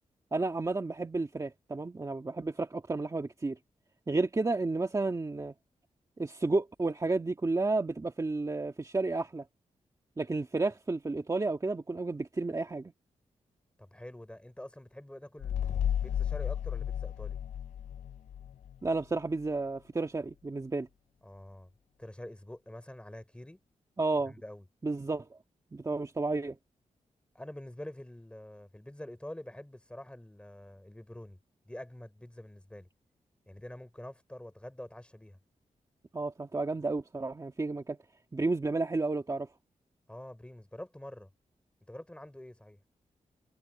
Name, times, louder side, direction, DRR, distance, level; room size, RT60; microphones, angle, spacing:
voice 1, 0.3-3.6 4.1-5.5 6.2-9.5 10.2-12.9 18.8-20.9 24.0-24.3 24.8-25.3 25.7-26.6 36.1-38.0 38.3-39.5, right 3 dB, 25° right, 1.9 m, -31 dB
voice 2, 13.8-17.4 21.2-21.7 22.0-23.6 24.3-24.7 27.4-31.4 31.7-32.9 33.5-35.4 40.1-41.3 41.9-42.8, left 1 dB, 10° left, 5.1 m, -46 dB
sound 1, 15.4-18.8, left 9 dB, 70° left, 0.4 m, -33 dB
wide cardioid pair, 110°, 13 cm